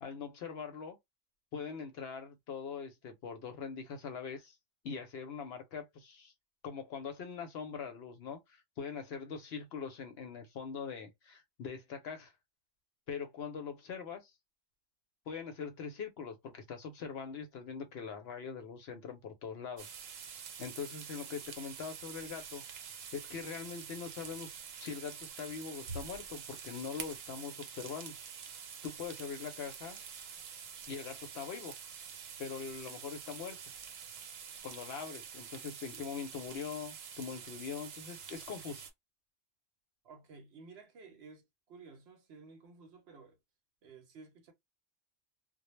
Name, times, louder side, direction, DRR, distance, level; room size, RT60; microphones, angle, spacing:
voice 1, 0.0-1.0 1.5-4.6 4.8-6.3 6.6-12.3 13.1-14.3 15.3-20.0 20.6-22.6 23.1-28.2 28.8-30.0 30.9-31.7 32.4-33.6 34.6-38.9, left 6 dB, 65° left, 0.7 m, -42 dB
sound 1, 19.8-38.9, right 7 dB, 85° right, 1.0 m, -47 dB
voice 2, 40.0-43.4 43.8-44.5, right 4 dB, 65° right, 0.8 m, -54 dB
2.1 x 2.0 x 3.0 m
omnidirectional pair, 1.3 m